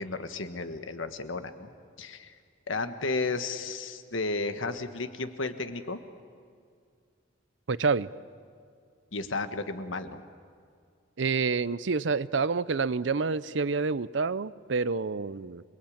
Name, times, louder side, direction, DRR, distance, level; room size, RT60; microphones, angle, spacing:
voice 1, 0.0-1.7 2.0-2.4 2.7-6.0 9.1-10.2, left 3 dB, 90° left, 9 dB, 1.5 m, -33 dB
voice 2, 7.7-8.1 11.2-15.6, right 4 dB, 70° right, 18 dB, 0.6 m, -28 dB
28.0 x 20.5 x 8.7 m, 2.2 s
head